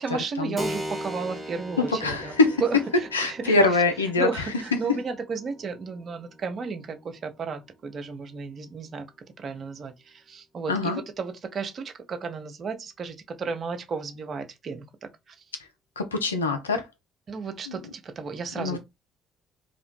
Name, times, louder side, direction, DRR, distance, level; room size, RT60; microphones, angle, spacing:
voice 1, 0.0-2.3 2.6-3.6 4.2-9.1 9.4-15.4 17.3-18.8, right 5 dB, 45° right, 0.5 m, -33 dB
Keyboard (musical), 0.6-8.8, equal, 10° right, 0.7 m, -40 dB
voice 2, 1.8-2.6 3.1-4.5 10.7-11.0 16.0-16.9 17.7-17.8 18.6-18.8, left 3 dB, 85° left, 0.3 m, -24 dB
2.7 x 2.0 x 3.1 m
figure-of-eight pair, 50°, 0 cm